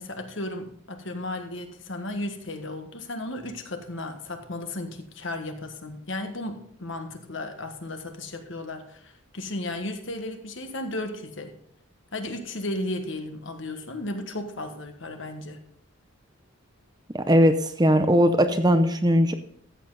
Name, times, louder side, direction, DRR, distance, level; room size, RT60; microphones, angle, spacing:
voice 1, 0.0-11.5 12.1-15.6, left 1 dB, 55° left, 6 dB, 1.4 m, -34 dB
voice 2, 17.1-19.3, equal, 20° right, 8 dB, 0.6 m, -19 dB
14.0 x 7.7 x 4.0 m, 0.64 s
head